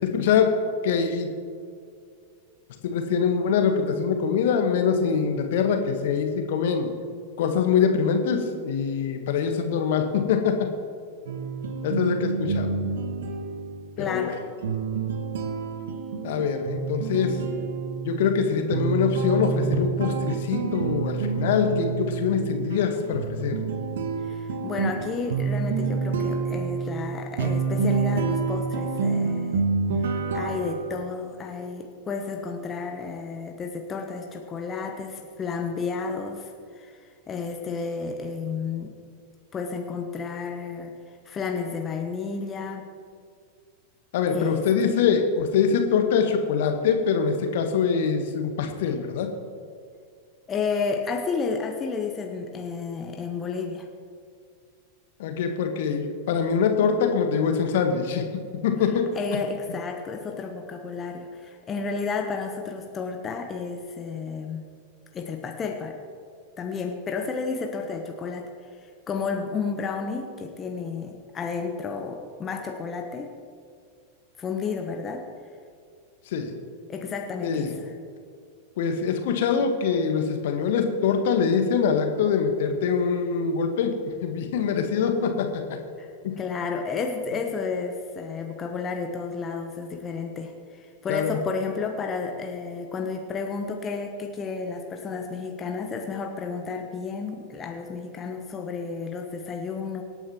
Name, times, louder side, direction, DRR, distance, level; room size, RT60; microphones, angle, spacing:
voice 1, 0.0-0.5 0.8-1.3 2.9-6.9 7.4-10.5 11.8-12.7 14.0-14.4 16.2-17.4 18.0-23.6 44.1-49.3 55.2-58.2 58.6-59.0 76.3-76.5 77.4-77.7 78.8-85.6 86.2-86.3 91.1-91.4, left 6 dB, 55° left, 5 dB, 1.4 m, -24 dB
sound 1, 11.3-31.1, right 4 dB, 60° right, 1.2 m, -28 dB
voice 2, 14.0-14.4 24.2-29.6 30.0-38.9 39.5-40.9 41.2-42.8 44.3-45.0 50.5-53.9 59.1-64.6 65.1-66.0 66.6-73.3 74.4-75.3 76.9-78.0 86.0-100.0, left 5 dB, 25° left, 3 dB, 1.0 m, -32 dB
25.0 x 8.9 x 3.1 m, 2.2 s
figure-of-eight pair, 90°, 0 cm